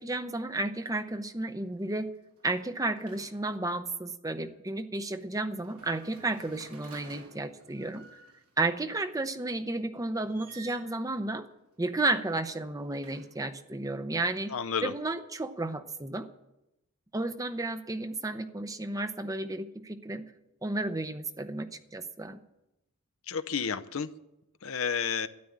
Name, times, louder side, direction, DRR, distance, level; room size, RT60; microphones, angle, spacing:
voice 1, 0.0-2.1 2.4-8.0 8.6-11.5 11.8-14.5 14.8-16.3 17.1-20.3 20.6-22.4, right 2 dB, 15° right, 10 dB, 0.7 m, -32 dB
sound 1, 1.0-1.3 1.6-3.7 5.6-8.6 10.2-11.0 12.2-13.6, right 3 dB, 80° right, 2.7 m, -53 dB
voice 2, 14.5-14.9 23.3-24.1 24.6-25.3, left 6 dB, 65° left, 11 dB, 0.7 m, -31 dB
12.5 x 11.0 x 8.7 m, 0.91 s
head